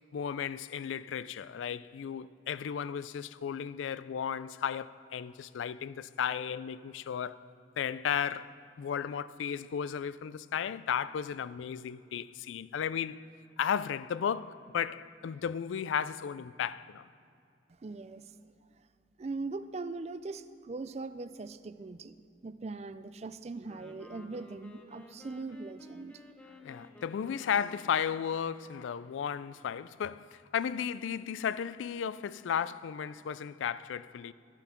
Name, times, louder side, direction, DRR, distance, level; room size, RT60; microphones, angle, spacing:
voice 1, 0.1-7.5 7.8-13.2 13.6-17.1 26.6-34.3, left 8 dB, 90° left, 0.3 m, -34 dB
voice 2, 17.8-18.2 19.2-22.2 22.4-26.2, right 3 dB, 35° right, 0.4 m, -40 dB
Wind instrument woodwind instrument, 23.6-28.8, left 2 dB, 10° left, 0.9 m, -53 dB
12.0 x 9.0 x 5.9 m
head